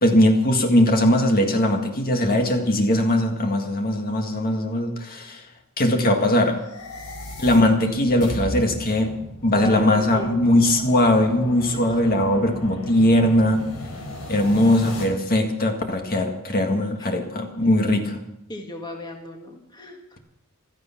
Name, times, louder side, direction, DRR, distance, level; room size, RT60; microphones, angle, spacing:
voice 1, 0.0-5.4 5.8-6.6 7.4-9.2 9.4-13.7 14.3-18.2, left 1 dB, 45° left, 4 dB, 1.9 m, -20 dB
sound 1, 6.5-15.0, left 1 dB, 80° left, 5.4 m, -36 dB
voice 2, 9.5-10.7 11.5-11.9 17.0-17.1 18.5-20.2, left 2 dB, 20° left, 2 dB, 1.8 m, -37 dB
16.0 x 14.0 x 5.9 m, 0.80 s
head